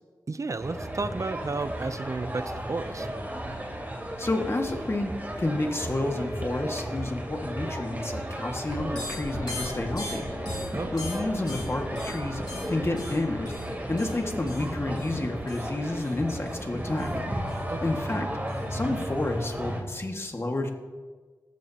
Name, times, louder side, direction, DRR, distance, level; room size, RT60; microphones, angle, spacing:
voice 1, 0.3-3.1 10.7-10.9 17.7-18.0, right 3 dB, 45° right, 11 dB, 0.6 m, -32 dB
sound 1, 0.6-19.8, right 1 dB, 25° right, 3.3 m, -35 dB
voice 2, 4.2-5.1 5.4-10.3 10.9-13.5 13.9-17.1 17.8-18.3 18.7-20.7, left 2 dB, 35° left, 3 dB, 1.9 m, -30 dB
sound 2, 8.7-19.0, left 2 dB, 70° left, 3.4 m, -40 dB
19.0 x 13.5 x 2.9 m, 1.5 s
cardioid pair, 50°, 7 cm